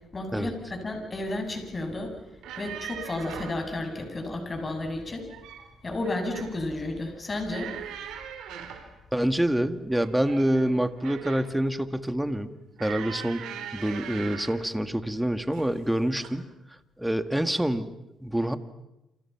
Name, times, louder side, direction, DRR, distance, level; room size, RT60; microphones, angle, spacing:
voice 1, 0.1-2.2 2.6-5.3 5.8-7.7, left 2 dB, 30° left, 5 dB, 7.9 m, -32 dB
sound 1, 2.3-3.6 5.1-5.7 6.0-6.6 7.5-8.9 9.9-11.6 12.8-14.6 15.5-15.8 16.2-16.4, right 8 dB, 85° right, 4.4 m, -40 dB
voice 2, 9.1-12.5 12.8-13.4 13.7-16.5 17.0-17.9 18.2-18.6, right 1 dB, 5° right, 9 dB, 1.9 m, -26 dB
29.5 x 27.5 x 6.0 m, 0.94 s
cardioid pair, 90°, 0 cm